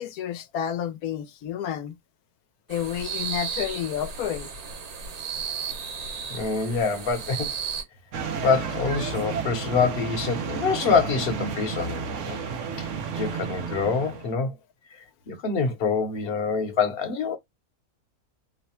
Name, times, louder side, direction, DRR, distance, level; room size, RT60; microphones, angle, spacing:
voice 1, 0.0-1.9 2.7-4.5, left 10 dB, 90° left, 1.1 m, -30 dB
sound 1, 2.7-7.8, right 6 dB, 85° right, 1.5 m, -34 dB
voice 2, 6.3-7.5 8.4-12.4 12.8-12.9 13.1-14.5 15.3-17.4, left 5 dB, 45° left, 1.0 m, -25 dB
sound 2, 8.1-14.3, right 6 dB, 65° right, 0.9 m, -32 dB
3.2 x 2.1 x 4.2 m
omnidirectional pair, 1.5 m